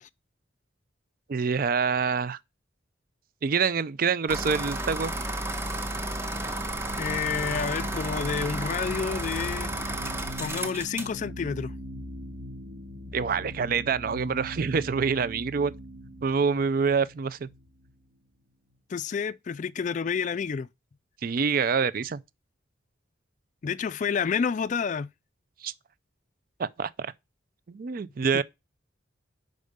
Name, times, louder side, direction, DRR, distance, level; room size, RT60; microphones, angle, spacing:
voice 1, 1.3-2.4 3.4-5.1 13.1-15.7 16.2-17.5 21.2-22.2 25.6-25.7 26.6-27.1 27.7-28.4, right 5 dB, 45° right, 0.4 m, -26 dB
sound 1, 4.3-11.2, right 1 dB, 15° right, 0.7 m, -32 dB
sound 2, 5.3-18.1, equal, 80° right, 1.8 m, -41 dB
voice 2, 7.0-9.7 10.4-11.7 18.9-20.7 23.6-25.1 28.3-28.4, left 6 dB, 40° left, 0.3 m, -29 dB
5.3 x 5.0 x 6.5 m
head